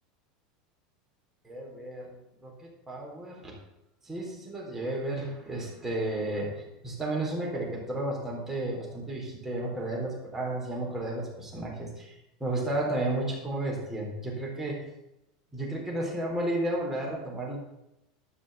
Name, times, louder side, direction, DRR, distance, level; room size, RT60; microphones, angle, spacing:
voice 1, 1.4-3.6 4.0-14.8 15.5-17.6, right 1 dB, 10° right, -2 dB, 4.1 m, -33 dB
12.5 x 5.6 x 8.1 m, 0.88 s
supercardioid pair, 135°, 4 cm